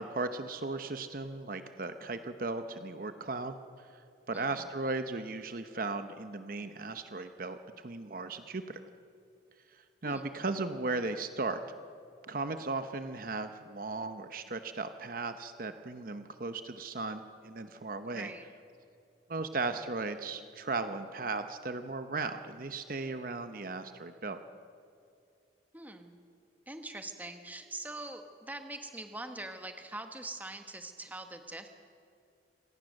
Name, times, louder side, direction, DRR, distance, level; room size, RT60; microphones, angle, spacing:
voice 1, 0.0-4.0 4.3-8.8 9.7-11.6 12.3-18.3 19.3-24.4, right 3 dB, 50° right, 9 dB, 0.8 m, -36 dB
voice 2, 4.3-4.6 10.0-10.2 18.1-18.4 25.7-26.2 26.7-31.7, right 2 dB, 10° right, 6 dB, 1.2 m, -43 dB
26.0 x 17.5 x 6.5 m, 2.5 s
head